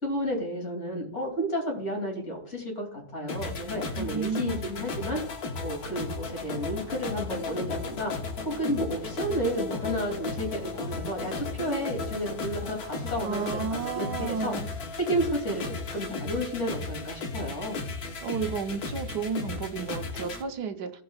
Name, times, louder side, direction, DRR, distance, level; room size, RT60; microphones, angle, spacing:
voice 1, 0.0-5.2 5.6-8.1 8.4-14.5 15.1-17.8, equal, 45° left, 0 dB, 3.2 m, -32 dB
sound 1, 3.3-20.4, left 3 dB, 65° left, 1.7 m, -35 dB
voice 2, 4.0-4.6 13.2-14.7 18.2-20.9, right 5 dB, 85° right, 7 dB, 1.5 m, -32 dB
17.0 x 7.6 x 2.4 m, 0.62 s
omnidirectional pair, 1.7 m